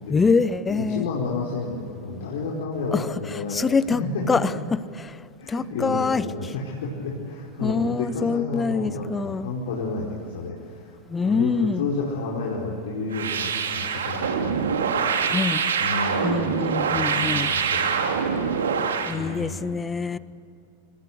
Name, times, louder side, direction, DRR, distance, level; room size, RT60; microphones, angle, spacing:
voice 1, 0.1-1.0 2.9-3.1 3.5-4.0 4.3-4.4 5.0-5.1 5.5-6.2 7.6-9.5 11.1-11.9 15.3-15.6 16.2-17.5 19.1-20.2, left 4 dB, 15° left, 18 dB, 0.9 m, -24 dB
voice 2, 0.7-4.5 5.4-10.9 11.2-15.4 15.8-16.6 16.9-18.8 19.1-19.8, left 3 dB, 55° left, -4 dB, 4.7 m, -31 dB
sound 1, 13.1-19.2, right 6 dB, 65° right, 2.9 m, -25 dB
27.5 x 26.5 x 8.1 m, 2.5 s
figure-of-eight pair, 90°, 0 cm